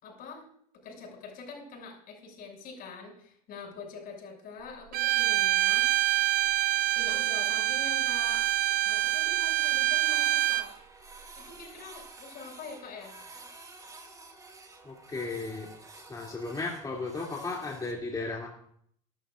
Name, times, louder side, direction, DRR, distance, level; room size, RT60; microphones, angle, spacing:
voice 1, 0.0-0.5 0.8-5.9 6.9-8.5 8.9-10.7 11.4-13.1, left 4 dB, 50° left, 1 dB, 7.0 m, -44 dB
Bowed string instrument, 4.9-10.7, right 15 dB, 50° right, 0.9 m, -26 dB
Printer, 6.3-6.4 6.6-6.7 7.1-7.2 7.4-7.5 7.8-7.9 8.2-9.2 9.6-17.9, right 3 dB, 20° right, 3.5 m, -50 dB
voice 2, 14.8-15.7 16.1-18.5, left 3 dB, 20° left, -3 dB, 3.0 m, -35 dB
21.5 x 13.0 x 2.6 m, 0.65 s
hypercardioid pair, 75°, 19 cm